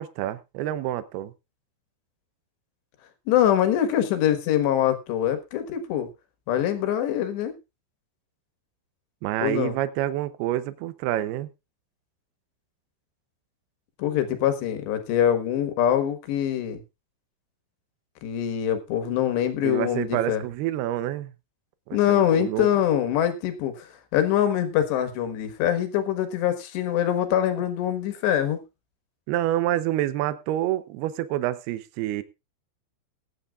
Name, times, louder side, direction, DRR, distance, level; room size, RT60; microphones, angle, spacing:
voice 1, 0.0-1.3 9.2-11.5 19.6-21.3 21.9-22.7 29.3-32.2, right 13 dB, 75° right, 13 dB, 2.5 m, -28 dB
voice 2, 3.3-6.1 6.5-7.6 9.4-9.7 14.0-16.8 18.2-20.4 21.9-28.6, left 10 dB, 75° left, 8 dB, 3.5 m, -24 dB
21.0 x 9.8 x 2.4 m, 0.26 s
omnidirectional pair, 5.3 m